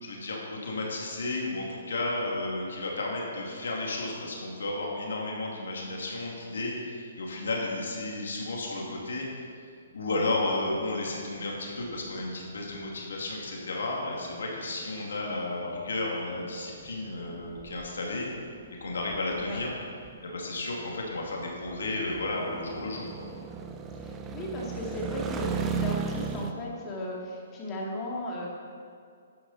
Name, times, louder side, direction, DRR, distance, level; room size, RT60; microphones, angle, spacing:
voice 1, 0.0-9.3 9.9-18.3 18.8-19.7 20.2-23.3, left 2 dB, 75° left, -2 dB, 2.5 m, -33 dB
sound 1, 10.9-26.5, right 5 dB, 20° right, 0.7 m, -38 dB
voice 2, 24.0-28.5, left 1 dB, 25° left, -3 dB, 2.6 m, -36 dB
11.5 x 9.7 x 4.3 m, 2.2 s
hypercardioid pair, 135°, 0 cm